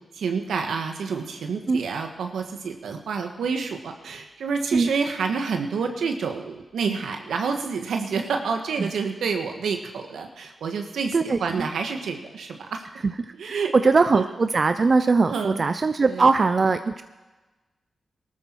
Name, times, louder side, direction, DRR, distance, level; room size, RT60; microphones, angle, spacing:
voice 1, 0.1-12.8 13.4-13.7 14.1-14.3 15.3-15.7 16.1-16.3, right 5 dB, 90° right, 5 dB, 1.5 m, -28 dB
voice 2, 11.1-11.7 13.0-17.0, right 4 dB, 50° right, 10 dB, 0.6 m, -21 dB
19.0 x 13.0 x 4.6 m, 1.2 s
cardioid pair, 55°, 0 cm